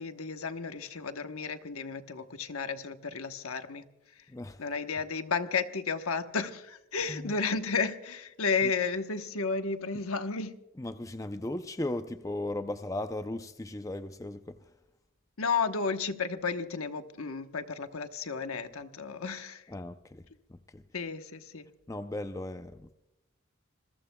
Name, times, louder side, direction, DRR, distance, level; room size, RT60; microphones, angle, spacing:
voice 1, 0.0-3.8 4.2-4.3 4.6-10.5 15.4-19.6 20.9-21.7, left 5 dB, 80° left, 1.1 m, -33 dB
voice 2, 4.3-4.6 7.1-7.3 8.6-8.7 10.8-14.6 19.7-20.2 20.5-20.8 21.9-23.0, left 1 dB, 15° left, 0.5 m, -37 dB
27.5 x 21.5 x 2.3 m
head